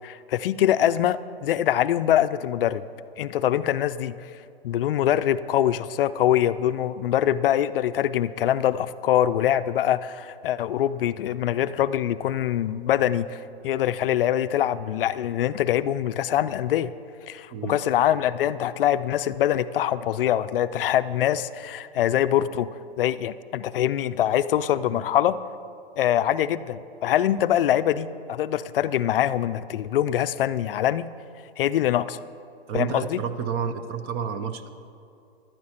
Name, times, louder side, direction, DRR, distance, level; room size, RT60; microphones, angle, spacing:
voice 1, 0.0-2.8 3.2-4.2 4.6-16.9 17.3-22.7 23.0-25.4 26.0-31.1 31.6-32.2 32.7-33.2, left 11 dB, 60° left, 14 dB, 0.4 m, -24 dB
voice 2, 32.7-34.7, right 7 dB, 25° right, 10 dB, 0.4 m, -30 dB
16.5 x 12.0 x 2.9 m, 2.5 s
hypercardioid pair, 125°, 31 cm